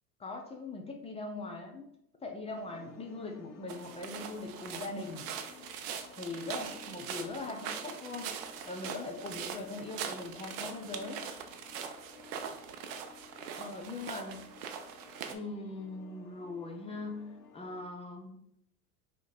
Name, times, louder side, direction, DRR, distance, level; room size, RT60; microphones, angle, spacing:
voice 1, 0.2-1.9 2.2-5.3 6.2-8.4 8.7-11.2 13.6-14.5 15.3-18.4, left 3 dB, 15° left, 2 dB, 0.4 m, -41 dB
sound 1, 2.5-17.8, left 7 dB, 80° left, 0.6 m, -55 dB
sound 2, 3.7-15.4, right 7 dB, 45° right, 0.6 m, -42 dB
2.9 x 2.9 x 3.9 m, 0.74 s
hypercardioid pair, 80°, 48 cm